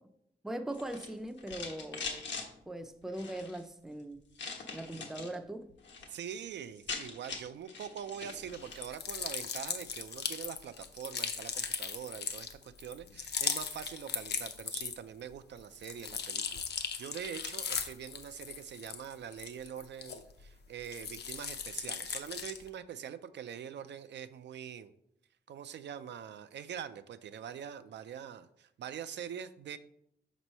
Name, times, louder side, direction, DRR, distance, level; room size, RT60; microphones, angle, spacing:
voice 1, 0.4-2.2 2.7-4.2 4.7-5.6, right 1 dB, ahead, 7 dB, 0.4 m, -40 dB
sound 1, 0.7-2.5 3.1-3.6 4.3-5.3 5.7-6.1 6.4-6.5 6.6-8.9, left 4 dB, 90° left, 1.2 m, -42 dB
voice 2, 6.1-24.9 25.5-29.8, right 8 dB, 80° right, 12 dB, 0.4 m, -44 dB
sound 2, 8.7-15.2 15.6-20.5 20.8-22.7, left 7 dB, 70° left, 0.6 m, -38 dB
6.0 x 3.0 x 5.4 m, 0.75 s
wide cardioid pair, 165°, 18 cm